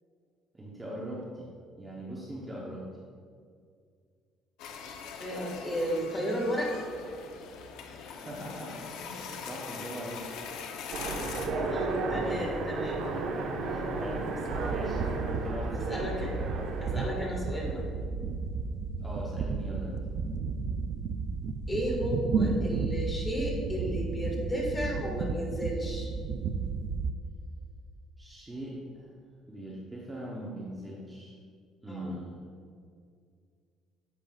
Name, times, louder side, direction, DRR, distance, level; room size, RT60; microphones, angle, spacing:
voice 1, 0.5-1.5 1.8-2.8 8.0-10.2 13.6-14.2 14.6-15.9 19.0-20.0 28.2-29.1 29.5-31.3 31.8-32.3, right 1 dB, 15° right, -5 dB, 0.9 m, -41 dB
sound 1, 4.6-11.5, left 6 dB, 80° left, 0.7 m, -42 dB
voice 2, 5.2-6.7 11.7-13.0 15.7-16.3 16.8-17.8 21.7-26.1 31.9-32.1, equal, 15° left, -2 dB, 1.7 m, -33 dB
Train, 10.9-17.8, right 3 dB, 70° right, 1.1 m, -33 dB
sound 2, 14.5-27.1, right 4 dB, 45° right, 0.4 m, -33 dB
10.5 x 7.6 x 2.4 m, 2.2 s
cardioid pair, 160°, 0 cm